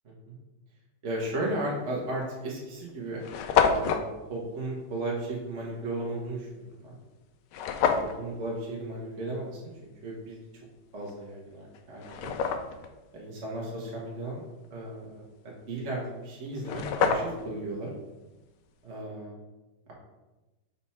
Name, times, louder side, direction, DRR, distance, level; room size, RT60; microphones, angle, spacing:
voice 1, 1.0-3.2 3.5-6.9 7.8-7.9 8.2-10.4 10.9-12.3 13.1-14.4 14.7-17.9 18.8-19.4, right 1 dB, 40° right, -3 dB, 1.5 m, -35 dB
sound 1, 1.7-1.9 2.6-2.7 2.9-3.0 3.2-4.1 7.5-8.2 11.1-11.2 11.7-12.9 16.2-16.3 16.5-17.5, left 6 dB, 70° left, 1.1 m, -27 dB
5.3 x 4.4 x 5.7 m, 1.1 s
omnidirectional pair, 2.2 m